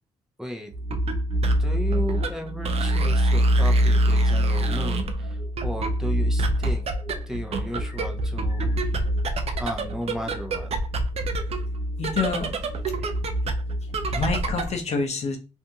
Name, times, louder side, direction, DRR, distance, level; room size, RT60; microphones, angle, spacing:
voice 1, 0.4-0.7 1.5-6.8 7.3-8.8 9.6-10.7 13.0-13.1 14.1-14.2, equal, 5° right, 2 dB, 0.7 m, -35 dB
sound 1, 0.7-14.8, right 1 dB, 50° right, 0.5 m, -25 dB
voice 2, 12.0-12.5 14.1-15.4, left 4 dB, 55° left, 4 dB, 0.7 m, -27 dB
2.7 x 2.6 x 2.2 m, 0.29 s
hypercardioid pair, 50°, 13 cm